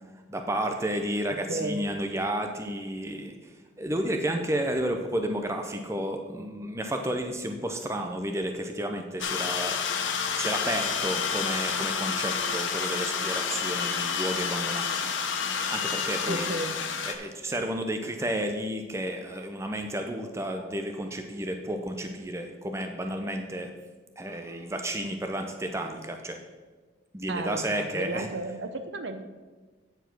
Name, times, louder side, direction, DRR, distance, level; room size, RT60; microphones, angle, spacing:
voice 1, 0.3-9.8 10.4-15.1 15.7-16.5 17.0-23.7 24.2-26.4 27.1-28.3, right 1 dB, 15° right, 5 dB, 0.5 m, -32 dB
voice 2, 1.5-1.8 16.3-16.8 27.3-29.2, right 2 dB, 60° right, 9 dB, 0.7 m, -33 dB
sound 1, 9.2-17.2, left 6 dB, 65° left, 0.8 m, -29 dB
9.1 x 4.6 x 6.0 m, 1.3 s
head